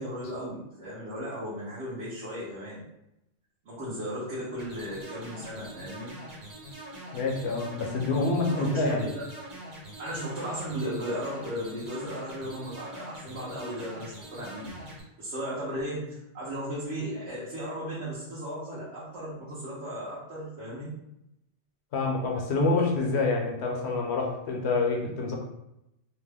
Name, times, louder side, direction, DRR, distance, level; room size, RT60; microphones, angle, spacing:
voice 1, 0.0-2.8 3.7-6.1 8.5-9.2 10.0-14.6 15.2-20.9, equal, 75° right, -9 dB, 1.2 m, -36 dB
sound 1, 4.6-15.0, right 1 dB, 40° right, 0.9 m, -44 dB
voice 2, 7.1-9.0 21.9-25.3, left 3 dB, 70° left, 0 dB, 0.9 m, -27 dB
2.9 x 2.1 x 3.3 m, 0.86 s
omnidirectional pair, 1.2 m